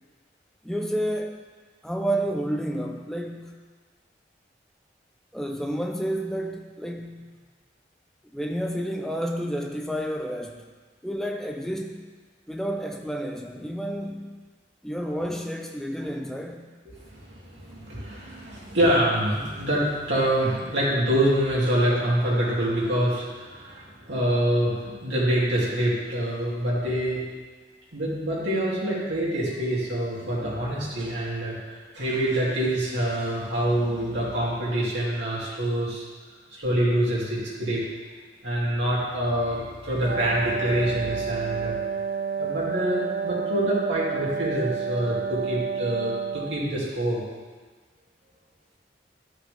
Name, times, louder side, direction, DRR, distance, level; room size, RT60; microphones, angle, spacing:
voice 1, 0.6-1.4 1.8-3.6 5.3-7.3 8.3-10.6 11.0-12.1 12.5-14.5 14.8-16.7, right 1 dB, 5° left, 3 dB, 0.5 m, -30 dB
voice 2, 16.8-27.2 27.9-36.0 36.5-37.8 38.4-41.8 42.4-47.2, right 1 dB, 85° right, -7 dB, 2.6 m, -26 dB
Wind instrument woodwind instrument, 40.1-46.8, right 6 dB, 65° right, 0.4 m, -30 dB
11.5 x 5.8 x 3.4 m, 1.4 s
head